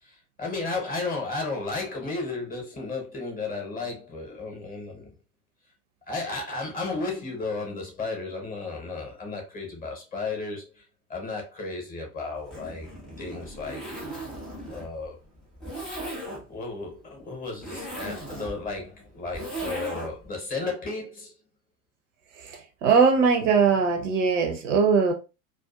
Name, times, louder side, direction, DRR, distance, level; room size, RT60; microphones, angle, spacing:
voice 1, 0.0-5.1 6.1-10.8 11.1-12.9 13.2-13.8 14.7-15.2 16.5-21.3, left 3 dB, 20° left, 0.9 m, -33 dB
Zipper (clothing), 12.4-20.3, right 1 dB, ahead, 0.3 m, -38 dB
voice 2, 22.4-25.1, right 5 dB, 55° right, 0.6 m, -21 dB
2.4 x 2.4 x 2.3 m
figure-of-eight pair, 80°, 46 cm